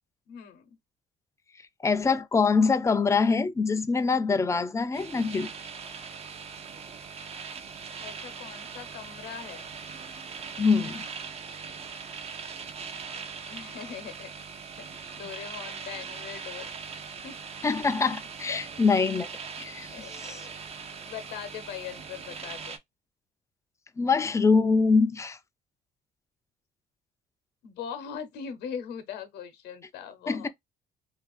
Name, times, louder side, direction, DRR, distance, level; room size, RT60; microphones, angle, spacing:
voice 1, 0.3-0.7 8.0-9.7 12.1-14.3 14.8-14.9 15.2-16.8 17.2-17.4 18.5-18.6 19.9-20.6 21.0-22.7 27.6-30.5, left 8 dB, 80° left, 0.8 m, -41 dB
voice 2, 1.8-5.5 10.6-11.1 17.6-19.3 19.6-20.4 24.0-25.4 30.3-30.5, left 4 dB, 15° left, 0.4 m, -24 dB
sound 1, 4.9-22.8, right 5 dB, 35° right, 0.5 m, -41 dB
2.8 x 2.5 x 2.3 m
cardioid pair, 110°, 17 cm